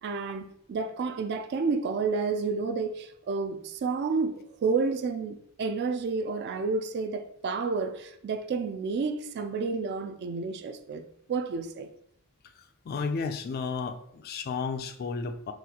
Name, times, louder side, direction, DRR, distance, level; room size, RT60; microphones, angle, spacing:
voice 1, 0.0-11.0 11.3-11.9, right 4 dB, 50° right, 0.3 m, -30 dB
voice 2, 12.9-15.5, left 4 dB, 45° left, 0.3 m, -32 dB
4.0 x 2.5 x 2.8 m
head